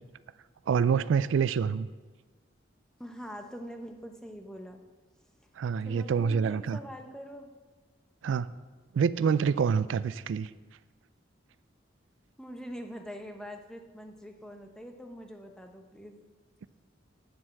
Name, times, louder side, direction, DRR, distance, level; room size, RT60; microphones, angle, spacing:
voice 1, 0.7-1.9 5.6-6.8 8.2-8.5 8.9-10.5, right 6 dB, 85° right, 16 dB, 0.3 m, -26 dB
voice 2, 3.0-4.8 5.8-7.5 12.4-16.2, equal, 5° left, 4 dB, 0.8 m, -44 dB
8.4 x 7.7 x 7.5 m, 1.3 s
head